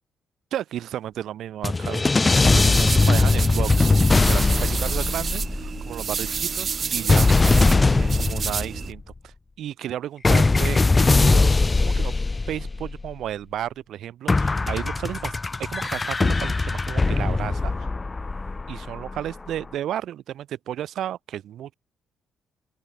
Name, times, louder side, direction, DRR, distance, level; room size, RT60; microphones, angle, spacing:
voice 1, 0.5-12.1 12.5-15.3 15.6-17.9 18.7-21.7, right 11 dB, 75° right, 1.9 m, -33 dB
sound 1, 1.6-5.9 7.1-9.0 10.2-13.1 14.3-19.3, left 3 dB, 25° left, 1.2 m, -20 dB
sound 2, 2.5-8.9, right 6 dB, 45° right, 1.0 m, -30 dB
open air
cardioid pair, 90°, 0 cm